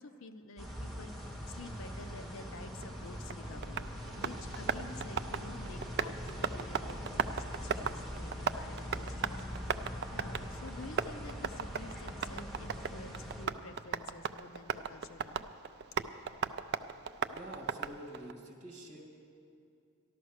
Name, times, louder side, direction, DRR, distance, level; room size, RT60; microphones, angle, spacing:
voice 1, 0.0-9.8 10.1-15.5, left 2 dB, 65° left, 10 dB, 0.6 m, -50 dB
sound 1, 0.6-13.5, equal, ahead, 1.2 m, -43 dB
Tap, 2.8-18.3, right 6 dB, 50° right, 0.4 m, -38 dB
sound 2, 4.3-11.2, left 1 dB, 15° left, 0.8 m, -51 dB
voice 2, 17.3-19.0, right 1 dB, 35° right, 0 dB, 2.3 m, -47 dB
13.0 x 12.0 x 6.4 m, 2.5 s
head